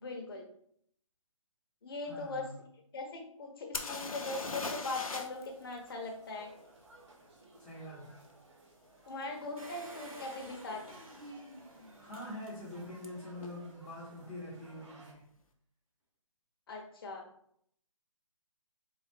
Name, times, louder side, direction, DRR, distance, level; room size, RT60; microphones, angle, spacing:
voice 1, 0.0-0.4 1.8-2.5 2.9-6.5 9.1-10.8 16.7-17.2, left 3 dB, 45° left, 2 dB, 0.9 m, -40 dB
voice 2, 2.1-2.6 7.6-8.3 12.0-15.2, left 1 dB, 5° left, -10 dB, 0.8 m, -45 dB
sound 1, 3.7-5.5 5.7-5.8 9.2-9.3 10.0-10.2 10.4-11.0 13.0-13.1 13.4-13.5, left 3 dB, 85° left, 0.6 m, -39 dB
sound 2, 4.5-15.1, right 2 dB, 55° right, 1.2 m, -59 dB
Engine, 9.6-13.0 13.5-13.6 13.8-13.9, right 1 dB, 85° right, 1.4 m, -50 dB
3.9 x 2.5 x 3.4 m, 0.68 s
figure-of-eight pair, 150°, 18 cm